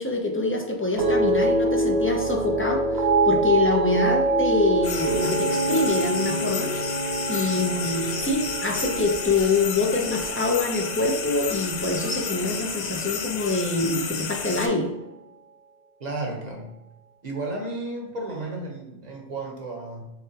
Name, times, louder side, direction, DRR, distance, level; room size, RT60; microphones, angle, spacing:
voice 1, 0.0-6.7 7.3-14.9, left 3 dB, 15° left, 1 dB, 0.4 m, -25 dB
sound 1, 1.0-11.3 11.6-12.2, right 2 dB, 70° right, 0.9 m, -25 dB
sound 2, 4.8-14.7, left 6 dB, 80° left, 0.9 m, -32 dB
voice 2, 16.0-16.7 17.2-20.1, right 2 dB, 40° right, 0 dB, 1.0 m, -33 dB
6.9 x 2.3 x 2.8 m, 0.93 s
omnidirectional pair, 1.2 m